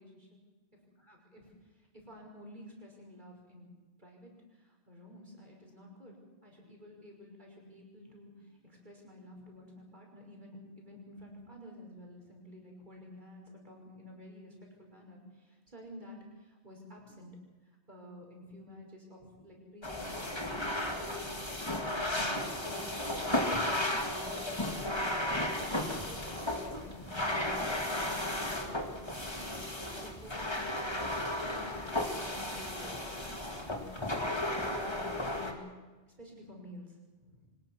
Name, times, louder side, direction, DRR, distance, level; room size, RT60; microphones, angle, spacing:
voice 1, 0.0-0.4 1.1-1.5 1.9-3.7 4.0-17.3 17.9-21.3 21.9-23.7 24.0-25.3 25.6-27.5 27.9-31.1 31.4-35.6 36.2-37.5, left 1 dB, 40° right, 0 dB, 5.9 m, -51 dB
sound 1, 19.8-35.5, left 1 dB, 25° left, 2.3 m, -34 dB
25.0 x 19.5 x 6.2 m, 1.2 s
omnidirectional pair, 1.2 m